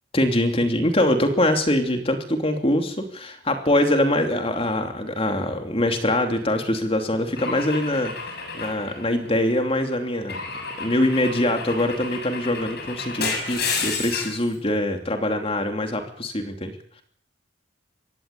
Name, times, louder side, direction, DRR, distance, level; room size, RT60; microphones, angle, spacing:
voice 1, 0.1-10.4 10.8-16.7, left 1 dB, 30° left, 5 dB, 2.9 m, -23 dB
Car / Engine / Glass, 7.4-9.6 10.3-14.5, left 4 dB, 55° left, 6.6 m, -31 dB
24.0 x 18.0 x 8.5 m, 0.64 s
head